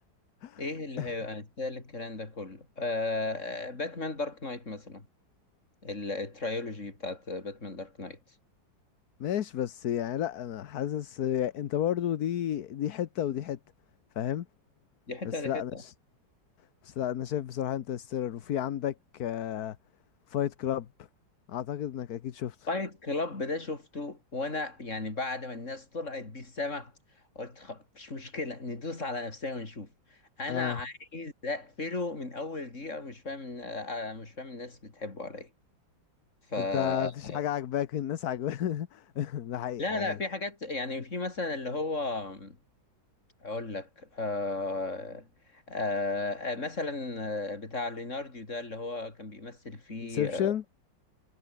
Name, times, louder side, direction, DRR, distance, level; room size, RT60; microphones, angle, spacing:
voice 1, 0.6-5.1 5.8-8.2 15.1-15.8 22.7-26.9 27.4-29.9 30.4-35.5 36.5-37.4 39.8-42.6 43.4-50.5, left 3 dB, 40° left, 4.4 m, -35 dB
voice 2, 9.2-13.6 14.2-14.5 15.2-15.9 16.8-19.8 20.3-20.9 21.5-22.7 30.5-30.8 36.6-40.2 50.1-50.6, left 10 dB, 60° left, 1.3 m, -32 dB
omnidirectional pair, 2.1 m